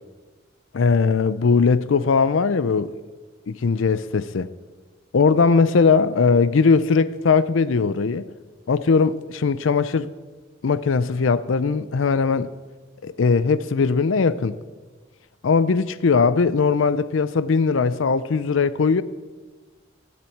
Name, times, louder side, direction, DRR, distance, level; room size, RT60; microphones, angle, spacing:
voice 1, 0.7-2.9 3.5-4.5 5.1-8.3 8.7-10.1 10.6-12.5 13.0-14.6 15.4-19.0, left 5 dB, 75° left, 0.5 m, -19 dB
15.0 x 7.4 x 8.5 m
head